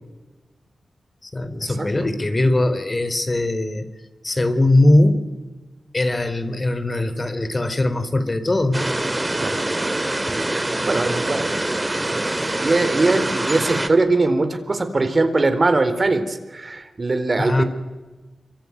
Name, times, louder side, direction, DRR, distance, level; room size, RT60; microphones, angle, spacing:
voice 1, 1.2-3.9 4.2-5.3 5.9-8.8 17.4-17.6, left 1 dB, 35° left, 11 dB, 3.5 m, -20 dB
sound 1, 8.7-13.9, right 1 dB, 25° right, 2.4 m, -24 dB
voice 2, 10.8-11.5 12.1-17.6, right 3 dB, 45° right, 9 dB, 4.1 m, -21 dB
26.0 x 23.5 x 9.6 m, 1.2 s
cardioid pair, 45°, 0 cm